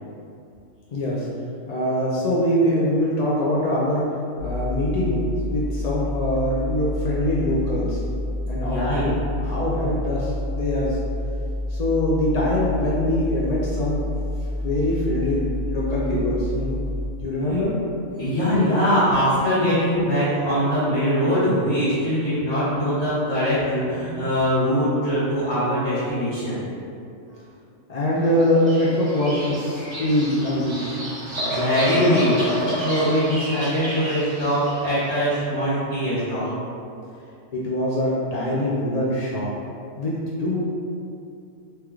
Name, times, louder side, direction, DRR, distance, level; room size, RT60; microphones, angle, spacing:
voice 1, 0.9-1.3 1.7-4.0 4.4-5.2 5.5-8.0 8.5-9.1 9.4-11.0 11.7-14.0 14.6-16.8 17.2-17.7 27.9-31.0 37.5-39.5 40.0-40.7, left 1 dB, 70° left, -6 dB, 0.3 m, -23 dB
sound 1, 4.4-17.1, left 1 dB, 55° left, 1.0 m, -28 dB
voice 2, 8.6-9.1 17.5-17.6 18.2-26.6 31.2-36.6, equal, 25° left, -14 dB, 0.8 m, -22 dB
Bird vocalization bird call bird song, 28.4-35.0, equal, 30° right, 0.5 m, -30 dB
3.3 x 3.0 x 3.5 m, 2.5 s
omnidirectional pair, 1.4 m